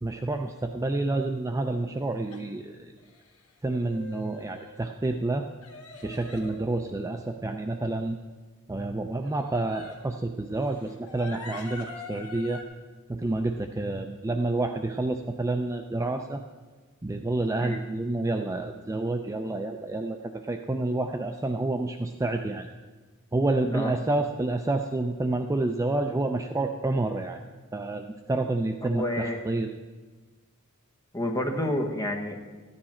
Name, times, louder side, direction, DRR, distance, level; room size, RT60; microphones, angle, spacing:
voice 1, 0.0-2.9 3.6-5.5 6.0-8.2 8.7-12.6 13.1-16.4 17.0-22.7 23.3-27.4 27.7-29.7, right 2 dB, 15° right, 5 dB, 0.4 m, -29 dB
sound 1, 2.3-2.4 3.0-3.5 3.8-4.9 5.6-7.3 9.2-10.1 10.6-12.6, left 3 dB, 75° left, 1.7 m, -44 dB
voice 2, 28.8-29.4 31.1-32.5, left 1 dB, 15° left, 3 dB, 1.1 m, -29 dB
13.5 x 9.8 x 4.3 m, 1.3 s
head